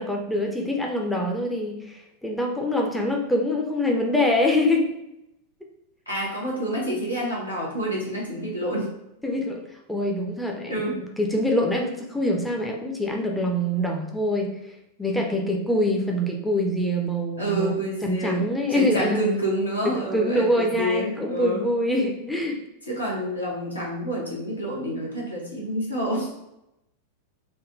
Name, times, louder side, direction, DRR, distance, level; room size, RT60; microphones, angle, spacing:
voice 1, 0.0-4.9 9.2-9.6 9.9-10.9 11.2-14.5 15.0-17.7 18.0-19.2 19.8-22.6, left 1 dB, 5° left, 0 dB, 0.4 m, -24 dB
voice 2, 6.1-8.9 10.7-11.0 17.4-21.6 22.9-26.3, equal, 80° left, -4 dB, 0.9 m, -28 dB
3.4 x 2.1 x 2.6 m, 0.86 s
figure-of-eight pair, 90°, 0 cm